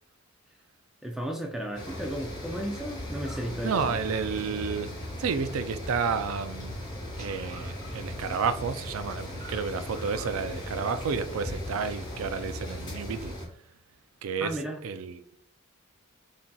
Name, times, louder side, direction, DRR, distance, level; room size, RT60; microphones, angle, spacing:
voice 1, 1.0-3.9 14.4-14.8, right 1 dB, ahead, 0.4 m, -34 dB
sound 1, 1.7-13.5, left 1 dB, 20° left, 1.2 m, -37 dB
voice 2, 3.6-4.9 5.2-6.8 7.2-13.3 14.2-15.2, right 5 dB, 80° right, 0.4 m, -31 dB
5.5 x 2.7 x 2.3 m
head